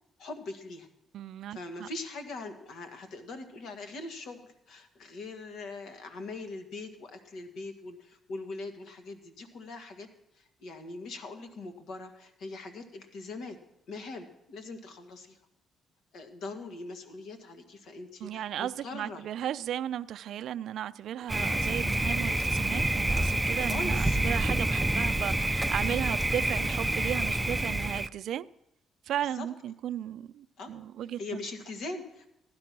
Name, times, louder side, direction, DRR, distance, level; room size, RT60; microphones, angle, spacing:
voice 1, 0.2-0.9 1.5-10.1 10.3-13.6 13.9-15.4 16.1-19.2 23.6-24.2 29.3-29.5 30.6-30.7 31.2-32.3, left 3 dB, 75° left, 2.0 m, -41 dB
voice 2, 1.1-1.9 18.2-28.5 29.1-31.2, right 11 dB, 75° right, 0.5 m, -35 dB
Thunder, 21.3-28.1, right 1 dB, 15° right, 0.5 m, -28 dB
15.5 x 11.5 x 6.0 m
cardioid pair, 90°, 0 cm